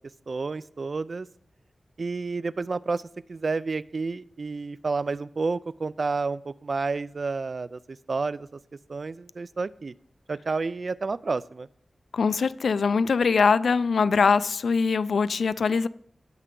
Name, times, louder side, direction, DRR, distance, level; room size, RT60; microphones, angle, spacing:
voice 1, 0.3-1.3 2.0-3.0 3.3-8.6 8.9-9.9 10.3-11.7, right 4 dB, 50° right, 0.3 m, -30 dB
voice 2, 12.1-15.9, left 5 dB, 90° left, 0.3 m, -22 dB
18.0 x 6.7 x 3.7 m
wide cardioid pair, 110°, 0 cm